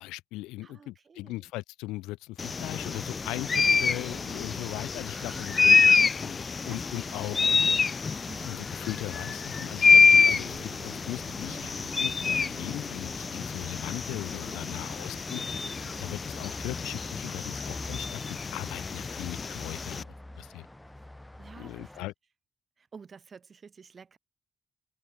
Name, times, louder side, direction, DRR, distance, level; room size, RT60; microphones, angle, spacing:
voice 1, 0.0-5.9 6.2-7.5 8.4-11.7 12.0-15.6 16.0-20.7 21.6-22.1, left 19 dB, 85° left, 1.1 m, -39 dB
voice 2, 0.6-1.5 3.8-4.6 5.1-5.9 6.2-7.2 7.4-7.9 8.3-8.6 14.5-15.2 15.8-16.3 20.9-21.1 21.4-22.1 22.8-24.2, right 5 dB, 50° right, 6.4 m, -51 dB
sound 1, 2.4-20.0, left 5 dB, 45° left, 0.7 m, -26 dB
sound 2, 2.6-22.0, left 1 dB, 10° left, 2.0 m, -48 dB
sound 3, 9.4-20.6, right 24 dB, 90° right, 7.3 m, -53 dB
open air
hypercardioid pair, 45°, 0 cm